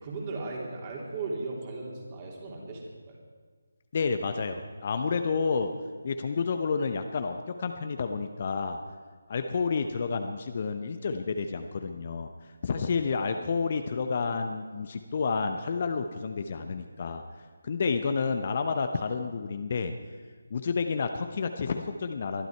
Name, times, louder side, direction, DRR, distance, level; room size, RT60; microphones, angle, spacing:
voice 1, 0.0-3.2, right 3 dB, 25° right, -2 dB, 3.2 m, -37 dB
voice 2, 3.9-5.7 6.0-8.8 9.3-12.3 12.6-17.2 17.6-19.9 20.5-22.5, left 5 dB, 35° left, 7 dB, 0.8 m, -30 dB
22.5 x 12.0 x 4.6 m, 1.5 s
figure-of-eight pair, 155°, 0 cm